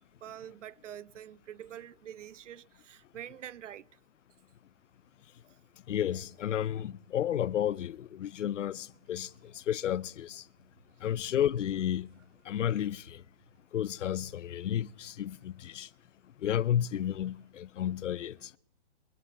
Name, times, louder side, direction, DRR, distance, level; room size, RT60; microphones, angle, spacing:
voice 1, 0.2-3.9, right 10 dB, 80° right, 0.6 m, -46 dB
voice 2, 5.9-10.5 11.0-12.1 12.4-13.2 13.7-15.9 16.4-18.5, left 10 dB, 80° left, 0.6 m, -32 dB
sound 1, 7.8-15.6, right 2 dB, 45° right, 4.2 m, -68 dB
22.5 x 12.5 x 4.1 m
hypercardioid pair, 170°, 36 cm